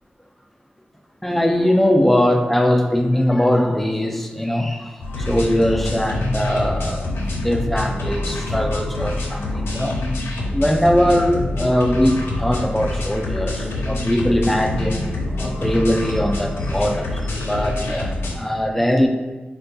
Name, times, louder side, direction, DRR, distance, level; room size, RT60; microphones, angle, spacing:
voice 1, 1.2-10.0 10.5-19.1, equal, 5° left, 3 dB, 0.4 m, -21 dB
sound 1, 5.0-18.3, left 2 dB, 85° left, 0.5 m, -26 dB
3.3 x 2.2 x 2.6 m, 1.3 s
cardioid pair, 45°, 4 cm